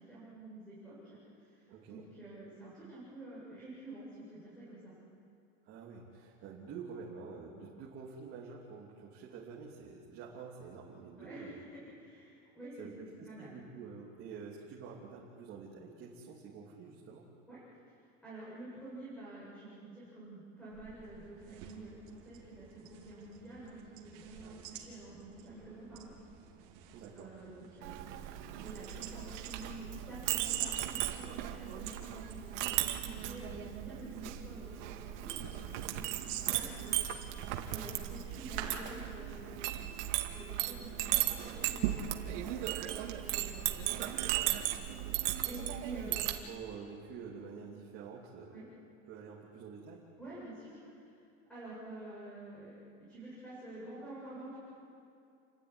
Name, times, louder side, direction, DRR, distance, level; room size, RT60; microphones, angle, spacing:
voice 1, 0.0-4.9 11.2-11.6 12.0-13.5 17.5-17.6 17.8-17.9 18.2-26.1 27.1-36.0 36.5-37.4 37.7-39.9 40.2-44.9 45.4-46.3 48.5-48.6 50.2-51.1 51.5-52.7 53.1-54.6, right 2 dB, ahead, -10 dB, 7.8 m, -49 dB
voice 2, 1.7-2.0 5.6-11.6 12.8-12.9 13.2-17.2 24.4-24.6 26.9-27.3 43.7-44.0 44.9-45.2 46.1-48.7 49.1-50.0, right 5 dB, 35° right, -4 dB, 3.2 m, -48 dB
sound 1, 20.6-39.5, right 10 dB, 55° right, 3.7 m, -49 dB
Chink clink, 27.8-46.4, right 13 dB, 75° right, 2.1 m, -36 dB
30.0 x 13.0 x 9.9 m, 2.5 s
supercardioid pair, 165°, 37 cm